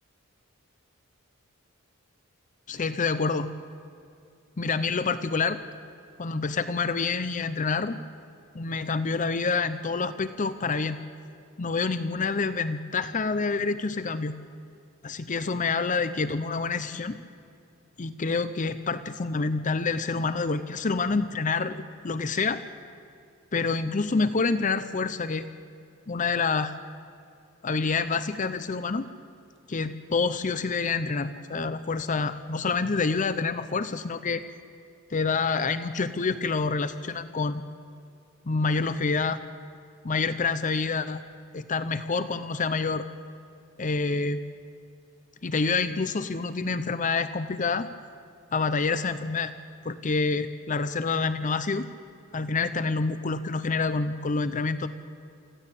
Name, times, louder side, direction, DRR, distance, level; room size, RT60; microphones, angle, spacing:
voice 1, 2.7-3.5 4.6-5.6 6.2-8.0 8.5-11.0 11.6-14.3 15.0-17.2 18.0-22.6 23.5-25.5 26.1-26.7 27.6-29.1 29.7-34.4 35.1-37.6 38.5-39.4 40.0-41.2 41.5-43.1 43.8-44.4 45.4-47.9 48.5-49.5 49.8-51.9 52.3-54.9, left 4 dB, 40° left, 12 dB, 0.7 m, -27 dB
25.0 x 15.5 x 8.4 m, 2.5 s
head